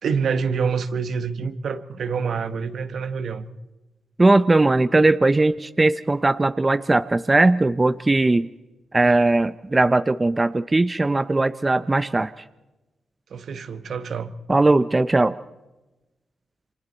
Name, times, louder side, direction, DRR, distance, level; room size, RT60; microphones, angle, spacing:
voice 1, 0.0-3.5 13.3-14.3, right 5 dB, 70° right, 10 dB, 1.2 m, -26 dB
voice 2, 4.2-8.5 8.9-12.3 14.5-15.4, right 2 dB, 25° right, 13 dB, 0.6 m, -19 dB
28.5 x 24.5 x 4.1 m, 1.1 s
cardioid pair, 70°, 0 cm